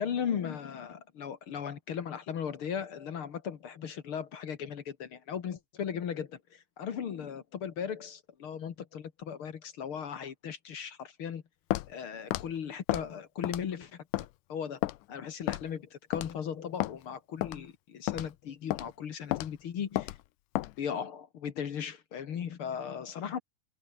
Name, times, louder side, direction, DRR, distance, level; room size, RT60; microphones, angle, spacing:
voice 1, 0.0-11.4 11.9-20.1 20.8-23.4, left 8 dB, 50° left, 1.9 m, -37 dB
Walk footsteps, 11.7-11.9 12.3-12.5 12.9-13.1 13.4-13.7 14.1-14.3 14.8-15.0 15.5-15.7 16.1-16.3 16.8-16.9 17.4-17.6 18.1-18.3 18.7-18.9 19.3-19.5 20.0-20.2 20.6-20.7, left 16 dB, 80° left, 2.2 m, -32 dB
omnidirectional pair, 3.8 m